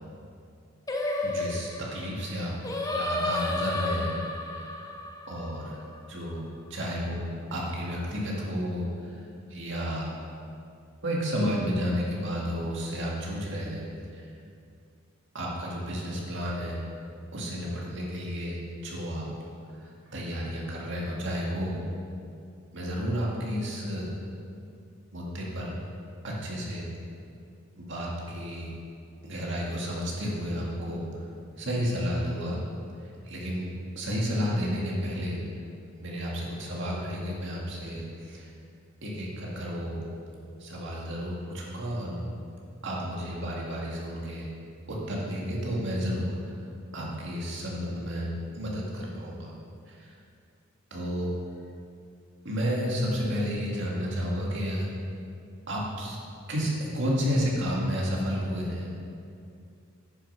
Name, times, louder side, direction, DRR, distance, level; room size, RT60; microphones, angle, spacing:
Singing, 0.9-6.2, left 2 dB, 15° left, 0.7 m, -32 dB
voice 1, 1.2-2.5 2.8-4.2 4.5-4.9 5.3-5.8 6.1-9.2 9.5-10.1 11.0-13.8 14.1-14.3 15.3-16.8 17.3-19.3 19.8-21.9 22.7-24.1 25.1-25.7 26.2-26.9 27.8-28.7 29.2-31.2 31.6-32.6 33.2-33.7 34.0-35.4 36.0-38.5 39.0-40.0 40.6-42.2 42.8-44.5 44.9-46.4 46.9-48.3 48.5-49.5 49.9-50.1 50.9-51.3 52.4-54.9 55.7-56.2 56.5-58.9, equal, 60° right, -4 dB, 2.0 m, -31 dB
9.7 x 6.6 x 5.6 m, 2.5 s
head